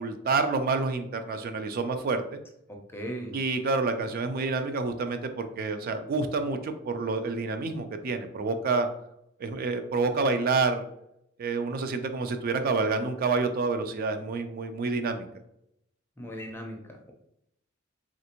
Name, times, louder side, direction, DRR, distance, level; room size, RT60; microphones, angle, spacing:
voice 1, 0.0-2.4 3.3-8.9 9.4-10.8 11.4-15.3, right 3 dB, 45° right, 8 dB, 0.3 m, -28 dB
voice 2, 2.9-3.3 16.2-16.8, equal, 10° left, 2 dB, 0.5 m, -36 dB
3.4 x 2.5 x 2.8 m, 0.78 s
head